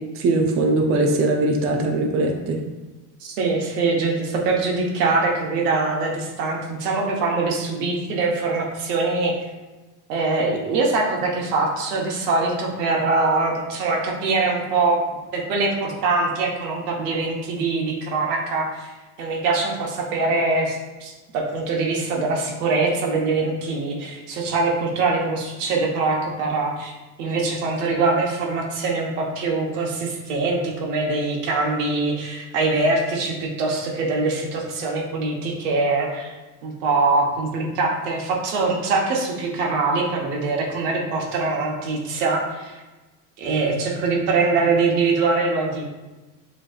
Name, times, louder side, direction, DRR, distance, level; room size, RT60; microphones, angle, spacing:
voice 1, 0.1-2.6, right 2 dB, 30° right, 1 dB, 0.6 m, -20 dB
voice 2, 3.2-9.3 10.1-15.0 15.3-26.9 27.2-36.3 36.6-42.8 43.4-45.9, right 3 dB, 85° right, 0 dB, 1.2 m, -23 dB
6.4 x 3.3 x 2.4 m, 1.2 s
supercardioid pair, 110°, 46 cm